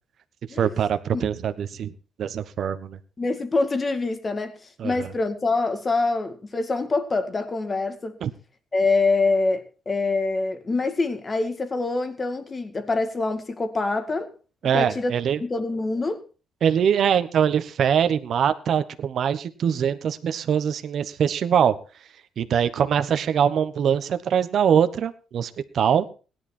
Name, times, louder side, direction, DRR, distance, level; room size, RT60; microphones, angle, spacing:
voice 1, 0.6-1.9 2.2-3.0 4.8-5.1 8.2-8.3 14.6-15.4 16.6-21.7 22.4-26.1, right 8 dB, 65° right, 1.2 m, -23 dB
voice 2, 3.2-4.5 4.8-8.2 8.7-14.3 14.7-15.1 15.4-16.2, left 3 dB, 30° left, 2.1 m, -25 dB
17.5 x 11.0 x 4.4 m
cardioid pair, 90°, 0 cm